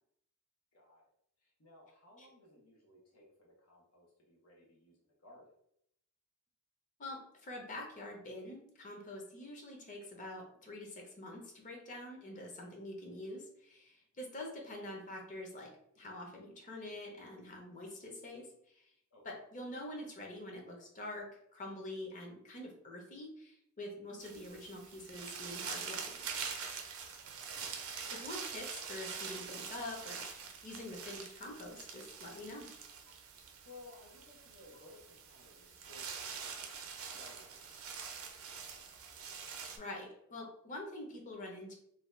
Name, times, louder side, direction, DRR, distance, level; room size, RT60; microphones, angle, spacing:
voice 1, 0.7-1.0 1.4-5.5 19.1-19.4 27.1-27.4 33.6-36.1 36.4-38.4, left 2 dB, 90° left, -3 dB, 0.8 m, -59 dB
voice 2, 7.0-15.7 16.0-18.5 18.7-18.9 19.2-26.4 28.1-32.7 39.7-41.7, left 1 dB, 40° left, 0 dB, 0.7 m, -46 dB
sound 1, 24.2-39.8, right 6 dB, 80° right, 0.5 m, -45 dB
2.7 x 2.2 x 3.2 m, 0.73 s
head